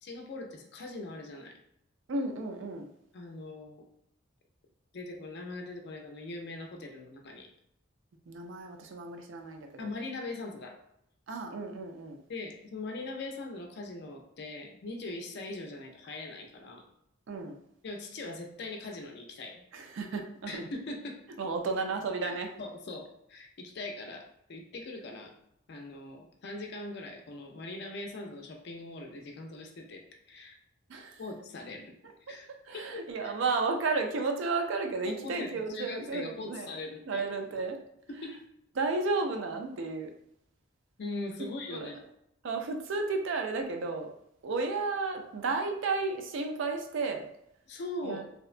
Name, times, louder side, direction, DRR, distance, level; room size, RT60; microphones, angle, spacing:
voice 1, 0.0-1.5 3.1-3.8 4.9-7.5 9.8-10.8 12.3-16.8 17.8-19.6 20.5-21.2 22.2-25.3 25.7-30.6 31.2-31.9 32.3-32.5 32.7-33.3 35.0-37.3 38.1-38.4 41.0-42.0 47.7-48.3, left 2 dB, 55° left, 3 dB, 0.4 m, -41 dB
voice 2, 2.1-2.9 8.3-9.7 11.3-12.2 17.3-17.6 19.7-20.6 21.4-22.5 30.9-31.2 32.3-32.4 32.7-36.7 37.1-37.8 38.8-40.1 41.7-41.9 42.4-44.1 44.4-47.3 48.0-48.2, right 3 dB, 65° right, 4 dB, 0.4 m, -33 dB
2.7 x 2.1 x 2.4 m, 0.76 s
head